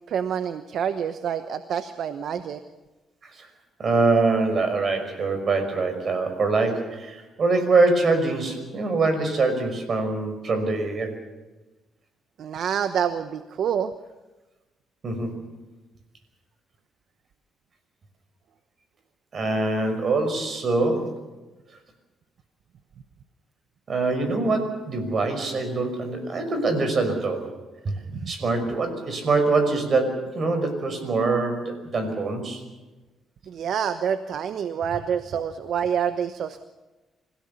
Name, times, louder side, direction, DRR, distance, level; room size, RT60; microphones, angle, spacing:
voice 1, 0.1-2.6 12.4-13.9 28.1-28.3 33.5-36.7, right 8 dB, 65° right, 10 dB, 1.0 m, -27 dB
voice 2, 3.8-11.1 15.0-15.4 19.3-21.1 23.9-27.5 27.8-28.0 28.3-32.6, right 3 dB, 45° right, 8 dB, 5.6 m, -24 dB
26.0 x 17.0 x 7.1 m, 1.1 s
cardioid pair, 90°, 0 cm